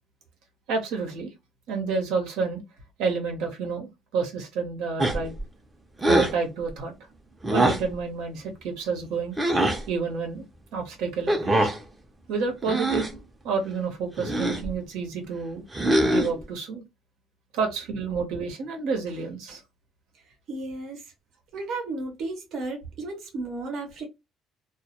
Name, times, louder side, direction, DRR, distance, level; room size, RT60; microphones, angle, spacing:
voice 1, 0.7-1.3 1.7-2.6 3.0-5.3 6.1-6.9 7.5-9.4 9.9-10.5 10.7-11.7 12.3-13.2 13.4-15.6 16.0-16.8 17.5-19.6, right 5 dB, 85° right, 0.8 m, -29 dB
sound 1, 5.0-5.4 6.0-6.4 7.4-7.9 9.4-9.8 11.3-11.8 12.6-13.2 14.2-14.7 15.7-16.4, right 1 dB, 15° right, 0.5 m, -23 dB
voice 2, 20.5-21.0 21.5-24.1, right 2 dB, 65° right, 0.7 m, -33 dB
2.1 x 2.1 x 2.8 m
cardioid pair, 135°, 0 cm